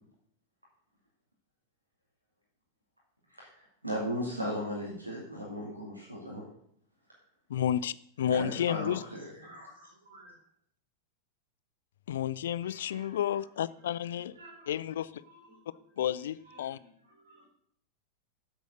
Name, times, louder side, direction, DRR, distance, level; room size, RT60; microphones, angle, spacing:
voice 1, 3.8-6.5 8.3-9.7, equal, 90° right, -4 dB, 2.3 m, -36 dB
voice 2, 7.5-9.0 12.1-14.3 14.7-15.2 16.0-16.8, left 10 dB, 60° left, 19 dB, 0.4 m, -31 dB
voice 3, 9.4-10.3 12.6-13.2 14.4-14.8 15.2-15.8 16.5-16.9 17.2-17.5, right 1 dB, 65° right, 1 dB, 3.5 m, -54 dB
8.3 x 7.9 x 6.3 m, 0.67 s
figure-of-eight pair, 90°, 0 cm